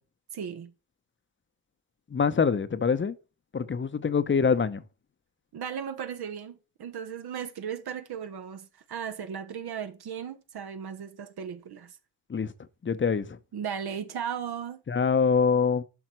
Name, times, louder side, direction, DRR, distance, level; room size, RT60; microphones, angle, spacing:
voice 1, 0.3-0.7 5.5-12.0 13.5-14.8, right 8 dB, 60° right, 1.1 m, -36 dB
voice 2, 2.1-3.1 3.5-4.8 12.3-12.5 12.8-13.4 14.9-15.8, left 5 dB, 25° left, 0.9 m, -24 dB
11.0 x 5.5 x 4.5 m
cardioid pair, 80°, 45 cm